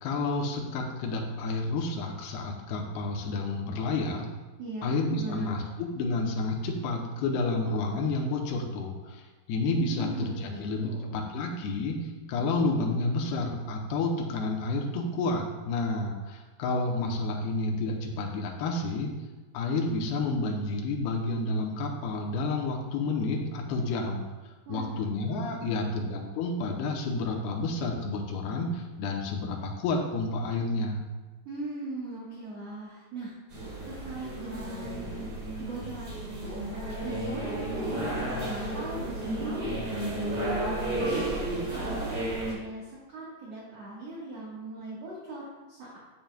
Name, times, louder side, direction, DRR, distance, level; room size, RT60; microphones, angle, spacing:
voice 1, 0.0-4.3 4.8-9.2 9.5-19.1 19.5-24.3 24.7-31.0, left 2 dB, 80° left, 0 dB, 2.9 m, -30 dB
voice 2, 4.6-5.7 9.9-11.2 24.7-25.1 25.6-25.9 31.5-46.0, right 2 dB, 60° right, -6 dB, 1.8 m, -40 dB
sound 1, 33.5-42.5, right 1 dB, 40° right, 3.5 m, -32 dB
9.2 x 9.1 x 2.3 m, 1.2 s
omnidirectional pair, 4.7 m